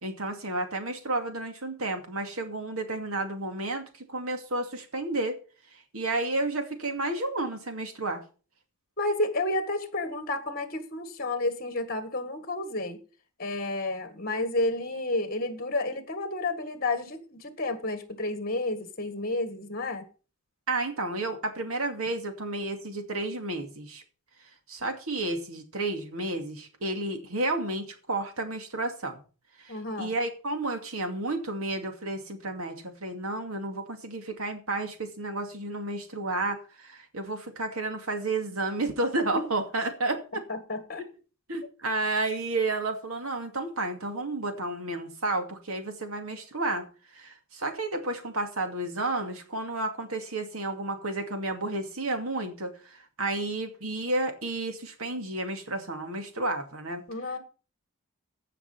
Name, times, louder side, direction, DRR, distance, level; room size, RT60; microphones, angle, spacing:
voice 1, 0.0-5.4 5.9-8.2 20.7-24.0 24.7-29.2 29.6-40.4 41.0-41.1 41.5-46.8 47.1-57.0, right 2 dB, 80° right, 2.4 m, -31 dB
voice 2, 9.0-13.0 13.4-20.0 29.7-30.1 39.3-39.5 40.5-41.0 57.1-57.4, left 2 dB, 40° left, 1.8 m, -31 dB
15.5 x 5.8 x 5.6 m
head